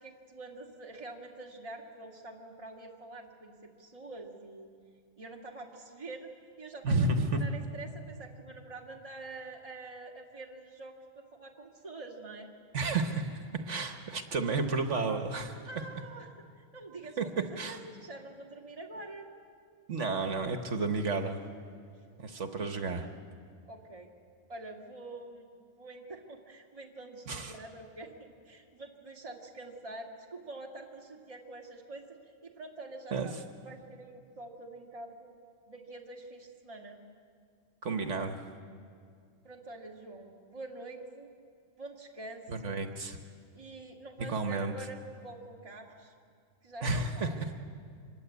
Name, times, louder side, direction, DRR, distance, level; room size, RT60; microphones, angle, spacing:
voice 1, 0.0-4.7 5.2-6.3 6.6-12.5 15.7-19.3 23.6-24.1 24.5-32.0 32.4-35.3 35.7-37.0 39.4-41.3 41.8-42.8 43.5-46.1 46.6-47.4, right 2 dB, 25° right, -1 dB, 2.2 m, -46 dB
voice 2, 6.8-7.4 12.7-15.6 17.2-17.8 19.9-21.4 22.2-23.1 27.3-27.5 33.1-33.3 37.8-38.4 42.5-43.2 44.2-44.7 46.8-47.3, right 3 dB, 70° right, 6 dB, 1.6 m, -31 dB
25.5 x 21.5 x 8.2 m, 2.3 s
omnidirectional pair, 1.3 m